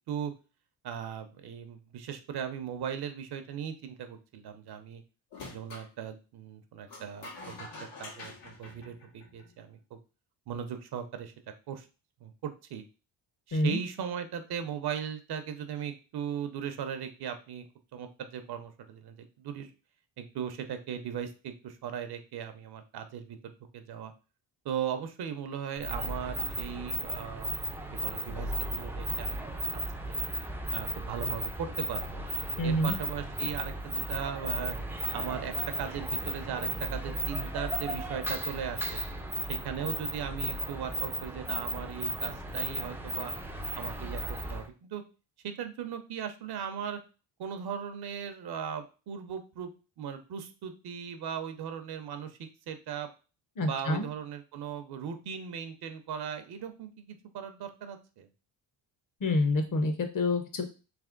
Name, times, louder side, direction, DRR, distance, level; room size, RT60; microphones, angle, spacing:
voice 1, 0.8-5.0 5.5-7.7 8.0-10.0 10.5-11.3 11.7-11.9 12.2-12.8 13.5-17.7 17.9-19.7 20.2-24.1 24.6-29.6 30.0-30.2 30.7-32.2 32.6-34.7 35.1-35.5 35.8-39.0 39.5-43.3 43.7-45.0 45.4-47.0 47.4-49.7 50.0-53.1 53.6-58.3, right 8 dB, 60° right, 8 dB, 0.7 m, -38 dB
sound 1, 5.3-5.9 6.9-9.6, left 2 dB, 85° left, 1.6 m, -46 dB
sound 2, 25.8-44.7, right 1 dB, 5° right, 0.4 m, -35 dB
voice 2, 32.6-33.0 53.6-54.0 59.2-60.7, left 2 dB, 45° left, 6 dB, 0.9 m, -27 dB
3.4 x 2.9 x 3.7 m, 0.33 s
cardioid pair, 115°, 45 cm